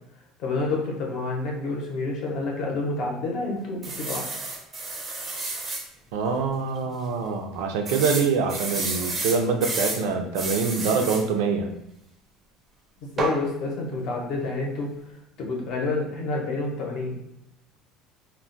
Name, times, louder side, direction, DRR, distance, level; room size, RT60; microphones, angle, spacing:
voice 1, 0.4-4.3 6.8-6.9 13.0-14.9 15.4-17.2, left 3 dB, 45° left, -1 dB, 0.7 m, -29 dB
sound 1, 3.8-5.8 6.4-6.5 6.8-6.9 7.9-10.0 10.3-11.2 13.2-13.4, right 2 dB, 15° right, 0.5 m, -30 dB
voice 2, 6.1-11.7, right 5 dB, 80° right, 4 dB, 0.4 m, -25 dB
2.2 x 2.1 x 3.8 m, 0.81 s
cardioid pair, 170°, 0 cm